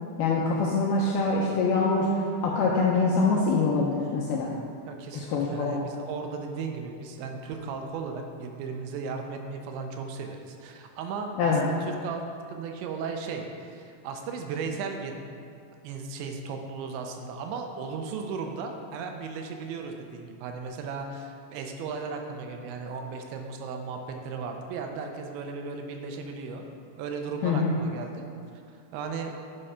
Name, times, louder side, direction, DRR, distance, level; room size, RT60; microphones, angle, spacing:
voice 1, 0.2-4.5 5.1-5.8 11.4-11.6 27.4-27.8, left 3 dB, 80° left, -3 dB, 2.2 m, -24 dB
voice 2, 4.9-15.2 15.8-26.6 27.0-28.3 28.9-29.3, right 5 dB, 80° right, 4 dB, 3.1 m, -36 dB
10.0 x 6.3 x 5.4 m, 2.4 s
omnidirectional pair, 5.3 m